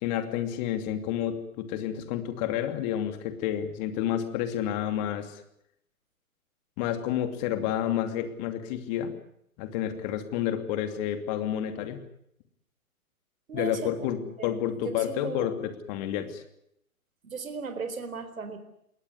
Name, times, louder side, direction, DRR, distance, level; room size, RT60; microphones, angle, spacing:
voice 1, 0.0-5.4 6.8-9.1 9.6-12.0 13.5-14.2 14.4-16.4, left 10 dB, 30° left, 9 dB, 2.7 m, -30 dB
voice 2, 13.5-13.9 14.2-15.5 17.2-18.6, right 5 dB, 65° right, 10 dB, 4.3 m, -37 dB
21.5 x 18.5 x 9.5 m, 0.76 s
figure-of-eight pair, 130°, 44 cm